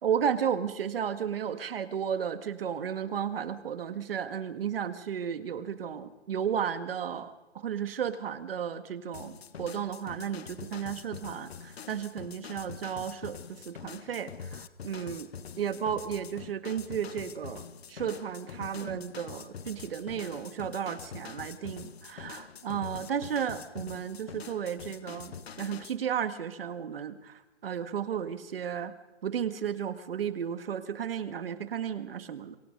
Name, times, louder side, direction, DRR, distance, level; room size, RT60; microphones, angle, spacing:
voice 1, 0.0-15.3 15.6-28.9 29.2-32.6, right 8 dB, 55° right, 11 dB, 1.9 m, -33 dB
sound 1, 9.1-26.0, left 7 dB, 60° left, 1.4 m, -45 dB
26.0 x 22.5 x 5.4 m, 1.0 s
hypercardioid pair, 160°, 35 cm